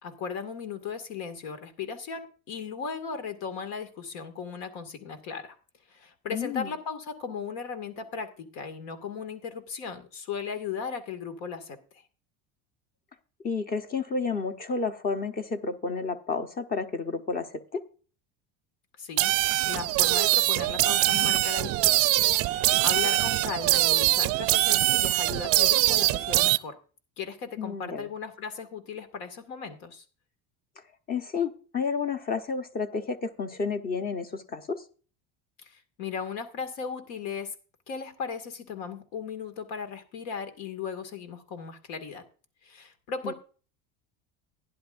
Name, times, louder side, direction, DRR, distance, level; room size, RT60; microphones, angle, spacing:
voice 1, 0.0-5.6 5.9-11.8 19.0-19.3 19.6-26.8 27.2-30.0 35.6-37.5 37.9-42.2 42.6-43.3, left 6 dB, 85° left, 9 dB, 2.2 m, -37 dB
voice 2, 6.3-6.7 13.4-17.8 27.6-28.1 31.1-34.8 43.2-43.3, left 5 dB, 25° left, 9 dB, 1.0 m, -31 dB
sound 1, 19.2-26.6, right 17 dB, 45° right, 0.4 m, -23 dB
15.5 x 10.5 x 2.6 m, 0.38 s
cardioid pair, 150°, 35 cm